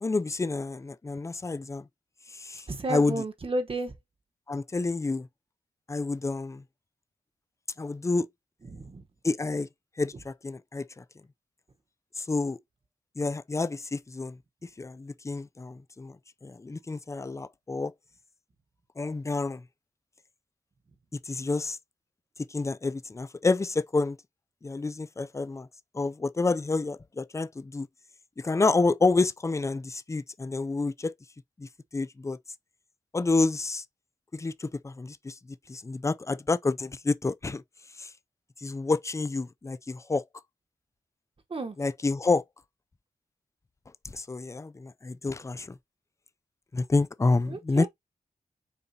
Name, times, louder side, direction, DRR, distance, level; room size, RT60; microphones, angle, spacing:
voice 1, 0.0-1.8 2.3-2.6 2.9-3.2 4.5-5.3 5.9-6.6 7.8-8.3 9.2-9.7 10.0-11.0 12.2-12.6 13.2-14.4 14.8-16.2 16.4-17.9 19.0-19.6 21.3-21.8 22.5-24.2 24.6-25.7 25.9-27.9 28.4-31.1 31.6-32.4 33.1-33.8 34.3-35.3 35.7-37.6 38.0-38.1 38.6-40.2 41.8-42.4 44.1-45.8 46.7-47.9, left 3 dB, 20° left, 0.4 m, -28 dB
voice 2, 2.7-3.9 8.7-9.0 41.5-41.8 47.5-47.9, right 2 dB, 40° right, 1.1 m, -32 dB
6.8 x 5.0 x 2.8 m
wide cardioid pair, 135°, 14 cm